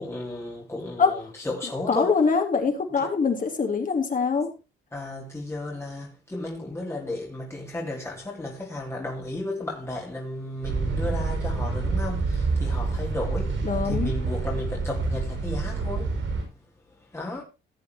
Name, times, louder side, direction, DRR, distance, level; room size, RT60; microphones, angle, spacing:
voice 1, 0.0-2.2 3.0-3.1 4.9-16.3 16.9-17.4, left 2 dB, 15° left, 2.9 m, -34 dB
voice 2, 1.9-4.5 13.6-14.1, left 5 dB, 40° left, 3.7 m, -23 dB
sound 1, 10.6-16.4, right 3 dB, 75° right, 6.5 m, -27 dB
16.0 x 8.3 x 2.9 m
cardioid pair, 90°, 20 cm